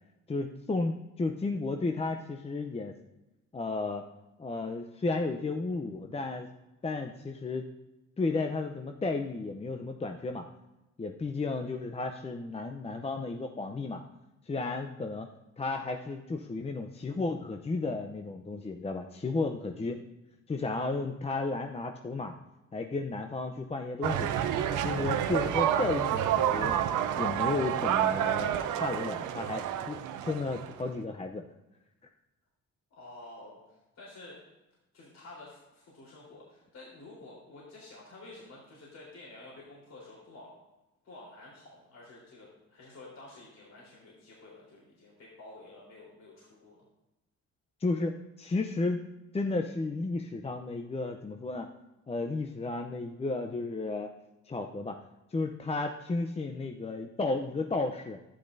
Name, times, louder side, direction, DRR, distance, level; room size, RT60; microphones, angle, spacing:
voice 1, 0.3-2.9 3.5-4.0 4.4-6.5 6.8-7.7 8.2-10.5 11.0-14.0 14.5-15.3 15.6-20.0 20.5-22.3 22.7-24.3 24.8-26.8 27.2-31.5 47.8-49.0 49.3-51.7 52.1-54.1 54.5-55.0 55.3-58.2, left 3 dB, 20° left, 5 dB, 0.6 m, -33 dB
sound 1, 24.0-30.9, right 10 dB, 90° right, 0.7 m, -29 dB
voice 2, 32.9-34.4 34.9-40.5 41.0-46.8, left 2 dB, 60° left, -5 dB, 3.8 m, -50 dB
11.5 x 10.0 x 2.6 m, 0.99 s
cardioid pair, 90°, 30 cm